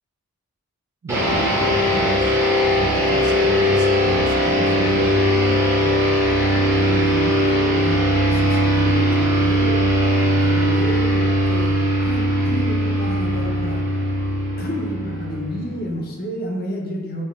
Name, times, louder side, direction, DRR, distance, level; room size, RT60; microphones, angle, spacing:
voice 1, 1.0-2.4 2.7-5.1, right 3 dB, 50° right, 4 dB, 0.3 m, -31 dB
sound 1, 1.1-15.9, equal, 10° right, 0.7 m, -19 dB
voice 2, 6.8-9.9 10.2-13.9 14.6-17.2, equal, 40° left, 0 dB, 0.5 m, -30 dB
5.4 x 2.7 x 2.3 m, 1.3 s
head